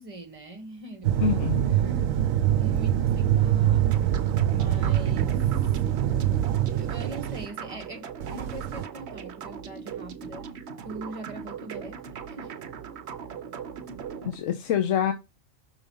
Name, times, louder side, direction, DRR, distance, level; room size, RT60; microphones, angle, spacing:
voice 1, 0.0-2.1 2.6-3.9 4.5-5.4 6.3-10.5 10.8-12.6, right 2 dB, 25° right, 1.2 m, -42 dB
sound 1, 1.0-7.5 8.2-8.9, right 11 dB, 90° right, 1.0 m, -24 dB
voice 2, 1.2-1.7 14.2-15.1, left 9 dB, 75° left, 1.1 m, -25 dB
sound 2, 3.9-14.4, right 7 dB, 60° right, 0.9 m, -40 dB
6.1 x 3.9 x 5.4 m
omnidirectional pair, 1.4 m